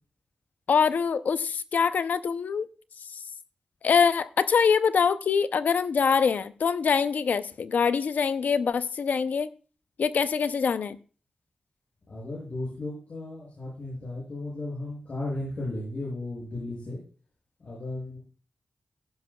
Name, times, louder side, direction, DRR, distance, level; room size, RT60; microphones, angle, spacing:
voice 1, 0.7-2.7 3.8-9.5 10.0-11.0, left 6 dB, 85° left, 13 dB, 0.6 m, -24 dB
voice 2, 12.1-17.0 17.6-18.2, left 2 dB, 60° left, -5 dB, 7.0 m, -35 dB
16.0 x 11.5 x 2.3 m, 0.38 s
wide cardioid pair, 90°, 3 cm